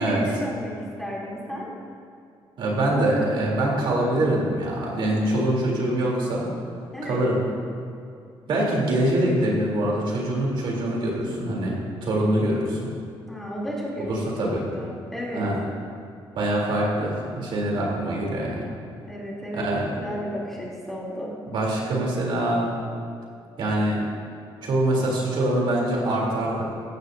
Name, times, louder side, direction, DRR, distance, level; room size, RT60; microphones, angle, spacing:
voice 1, 0.0-1.7 6.9-7.2 13.2-15.5 19.1-21.3, equal, 5° left, -6 dB, 3.1 m, -33 dB
voice 2, 2.6-6.5 7.0-7.4 8.5-12.9 14.1-14.7 15.3-15.6 16.4-18.7 19.5-19.9 21.5-22.7 23.6-24.0 24.6-26.7, right 1 dB, 65° right, -3 dB, 3.4 m, -24 dB
16.0 x 14.5 x 2.7 m, 2.4 s
cardioid pair, 175°, 9 cm